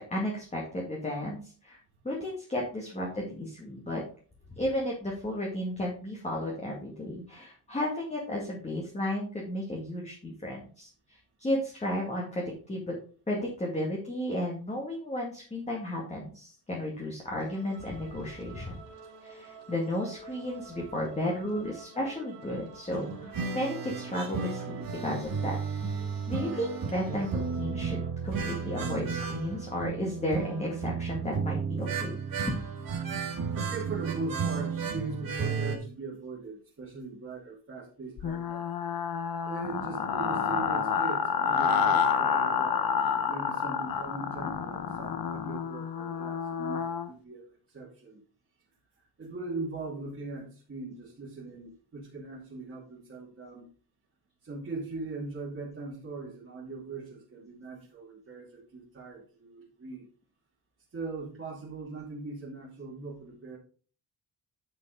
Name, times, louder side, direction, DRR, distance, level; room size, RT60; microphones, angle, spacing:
voice 1, 0.0-1.8 2.0-4.0 4.5-13.0 13.3-18.8 19.2-25.6 26.3-28.0 28.2-32.2, left 1 dB, 15° left, -2 dB, 2.1 m, -33 dB
sound 1, 17.4-28.1, right 4 dB, 70° right, 2.4 m, -50 dB
sound 2, 22.9-35.8, right 5 dB, 50° right, 1.8 m, -33 dB
voice 2, 33.5-38.6 39.4-42.8 43.1-48.2 49.0-53.7 54.4-60.1 60.9-63.6, right 3 dB, 30° right, -6 dB, 2.6 m, -40 dB
sound 3, 38.2-47.1, left 6 dB, 55° left, 1.2 m, -29 dB
9.8 x 5.8 x 3.9 m, 0.41 s
wide cardioid pair, 145°, 42 cm